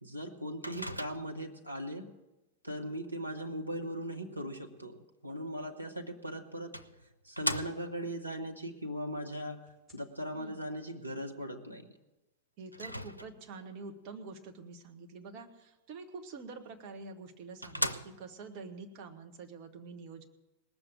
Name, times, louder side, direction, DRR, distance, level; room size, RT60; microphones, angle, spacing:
voice 1, 0.0-2.1 2.6-6.7 7.2-9.7 9.9-11.9, equal, 85° right, 2 dB, 1.0 m, -39 dB
Microwave oven, 0.6-1.5 5.9-6.0 6.7-8.1 12.7-13.6 16.7-16.8 17.3-17.4 17.6-18.5, equal, 90° left, 0.5 m, -38 dB
sound 1, 4.8-4.9 5.3-7.0 9.7-9.9, left 1 dB, 15° right, 4.4 m, -59 dB
voice 2, 10.3-10.6 12.6-20.3, right 4 dB, 40° right, 4 dB, 1.5 m, -47 dB
19.0 x 7.0 x 7.4 m, 1.0 s
figure-of-eight pair, 90°, 0 cm